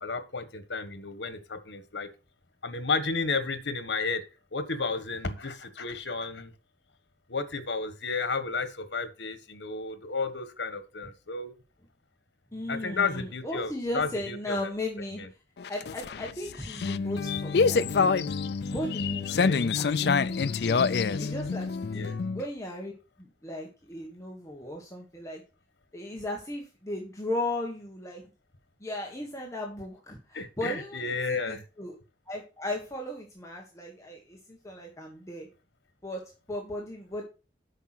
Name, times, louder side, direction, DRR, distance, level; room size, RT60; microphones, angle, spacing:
voice 1, 0.0-2.1 2.6-4.2 4.5-6.5 7.3-11.5 12.7-14.7 15.2-15.3 19.4-19.6 21.9-22.1 30.3-31.6, left 4 dB, 90° left, 11 dB, 1.4 m, -32 dB
voice 2, 12.5-15.2 15.7-18.3 18.7-22.9 23.2-25.4 25.9-28.2 28.8-31.9 32.3-35.5 36.0-37.2, left 1 dB, 15° left, -1 dB, 1.6 m, -36 dB
sound 1, 15.6-22.4, left 5 dB, 60° left, 0.4 m, -27 dB
8.4 x 5.7 x 6.0 m, 0.33 s
head